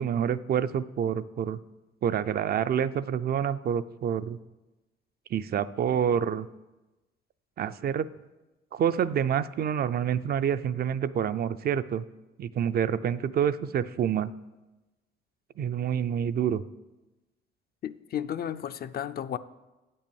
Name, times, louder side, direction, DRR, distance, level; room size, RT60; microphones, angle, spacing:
voice 1, 0.0-1.6 2.0-4.4 5.3-6.5 7.6-8.1 8.7-12.0 12.4-14.3 15.6-16.6, right 8 dB, 50° right, 0.4 m, -27 dB
voice 2, 17.8-19.4, left 10 dB, 50° left, 0.4 m, -33 dB
8.6 x 5.4 x 7.0 m
cardioid pair, 90°, 20 cm